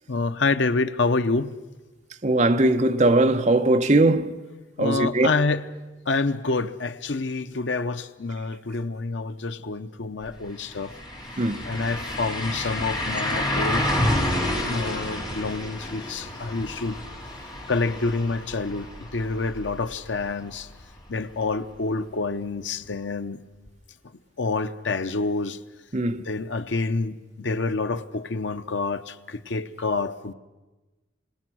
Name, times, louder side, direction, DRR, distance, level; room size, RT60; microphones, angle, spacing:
voice 1, 0.1-1.5 4.8-5.7 6.1-11.0 11.6-13.9 14.7-17.0 17.7-20.7 21.1-23.4 24.4-25.6 26.3-30.3, left 3 dB, 80° left, 0.8 m, -27 dB
voice 2, 2.2-4.4 4.8-5.3 11.4-11.7 25.9-26.2, right 2 dB, 40° right, 0.9 m, -20 dB
sound 1, 10.2-10.3 10.6-20.4 20.8-20.9 23.7-23.8, left 1 dB, 20° left, 3.3 m, -29 dB
26.5 x 20.0 x 6.2 m
head